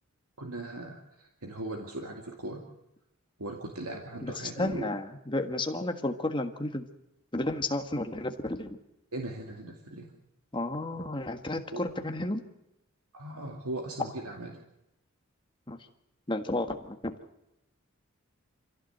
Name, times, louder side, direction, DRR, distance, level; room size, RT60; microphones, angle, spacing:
voice 1, 0.4-2.7 3.4-4.9 9.1-10.1 11.7-11.8 13.1-14.6, right 2 dB, 90° right, 2 dB, 2.3 m, -39 dB
voice 2, 4.6-6.9 7.3-8.8 10.5-12.4 15.7-15.8 16.3-17.2, left 2 dB, 20° left, 6 dB, 1.5 m, -32 dB
26.0 x 16.5 x 7.9 m, 0.88 s
head